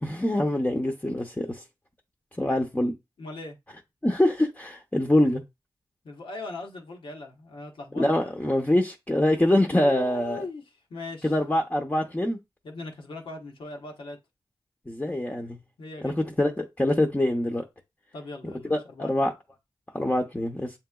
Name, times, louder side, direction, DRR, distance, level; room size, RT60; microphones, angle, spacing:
voice 1, 0.0-1.6 2.4-2.9 4.0-5.4 8.0-10.4 11.2-12.4 14.9-15.6 16.0-17.6 18.7-19.3 19.9-20.7, left 1 dB, 15° left, 0.8 m, -24 dB
voice 2, 3.2-3.6 6.0-8.0 9.8-10.6 10.9-11.3 12.6-14.2 15.8-16.2 18.1-19.3, left 3 dB, 75° left, 1.0 m, -39 dB
7.1 x 2.9 x 2.3 m
cardioid pair, 50°, 9 cm